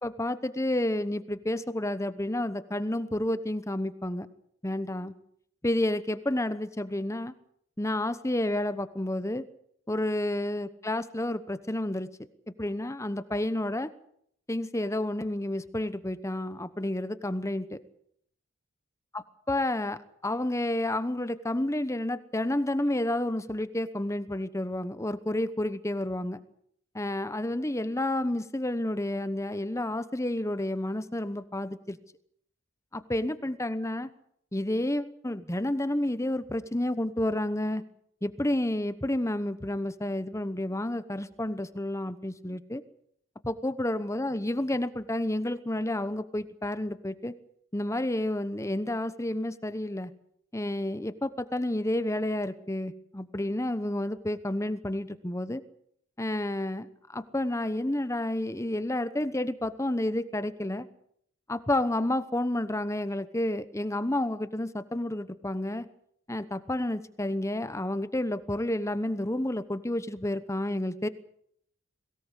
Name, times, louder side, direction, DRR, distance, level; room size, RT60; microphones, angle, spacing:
voice 1, 0.0-4.3 4.6-5.1 5.6-7.3 7.8-9.4 9.9-12.1 12.6-13.9 14.5-17.8 19.5-26.4 26.9-32.0 32.9-34.1 34.5-37.8 38.2-42.8 43.4-47.3 47.7-50.1 50.5-55.6 56.2-60.9 61.5-65.9 66.3-71.1, left 1 dB, 15° left, 13 dB, 1.0 m, -30 dB
22.5 x 17.5 x 8.4 m, 0.68 s
head